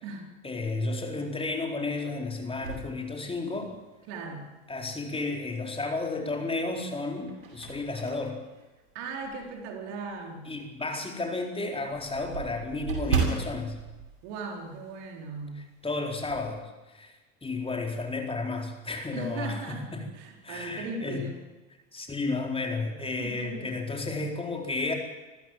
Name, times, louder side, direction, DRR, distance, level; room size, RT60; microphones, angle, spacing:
voice 1, 0.4-3.8 4.7-8.4 10.5-13.8 15.8-20.1 20.4-21.2 21.9-24.9, left 3 dB, 15° left, 2 dB, 4.1 m, -32 dB
sound 1, 2.6-3.9 4.4-4.5 6.0-6.5 7.0-9.6 10.1-10.2 10.6-10.7 11.0-11.1 11.3-15.1 15.3-15.6 15.9-16.5, right 5 dB, 85° right, 7.9 m, -35 dB
voice 2, 4.1-4.5 8.9-10.5 14.2-15.7 19.1-19.9 20.1-21.4 23.2-23.7, right 3 dB, 60° right, 3 dB, 4.6 m, -38 dB
25.5 x 15.5 x 7.6 m, 1.1 s
hypercardioid pair, 80°, 39 cm